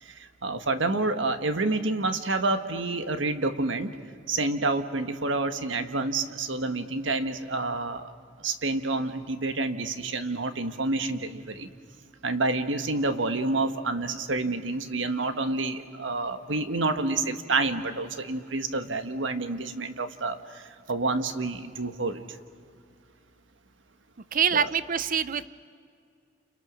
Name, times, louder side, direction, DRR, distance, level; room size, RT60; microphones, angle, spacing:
voice 1, 0.0-3.9 4.3-8.1 8.4-11.7 12.2-22.4 24.5-24.7, right 3 dB, 85° right, 8 dB, 1.4 m, -28 dB
voice 2, 24.3-25.5, right 7 dB, 45° right, 15 dB, 0.6 m, -25 dB
29.0 x 29.0 x 6.4 m, 2.2 s
head